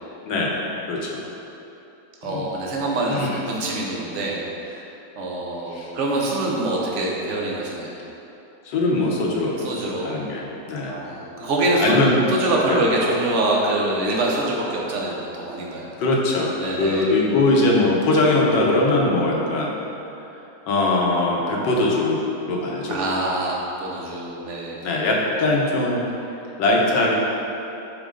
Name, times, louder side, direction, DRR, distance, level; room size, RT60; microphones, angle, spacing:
voice 1, 0.2-0.6 0.9-1.2 2.2-2.5 3.1-3.4 5.7-5.9 8.7-9.6 10.0-11.0 11.8-12.2 12.7-12.9 16.0-19.7 20.7-22.2 22.5-23.0 24.8-26.1 26.6-27.1, left 2 dB, 70° left, -2 dB, 1.7 m, -21 dB
voice 2, 2.2-4.9 5.2-7.9 9.6-10.1 10.8-12.0 12.3-15.9 16.6-17.1 22.9-24.8, right 2 dB, 45° right, -3 dB, 1.3 m, -25 dB
11.5 x 4.4 x 3.8 m, 3.0 s
omnidirectional pair, 2.0 m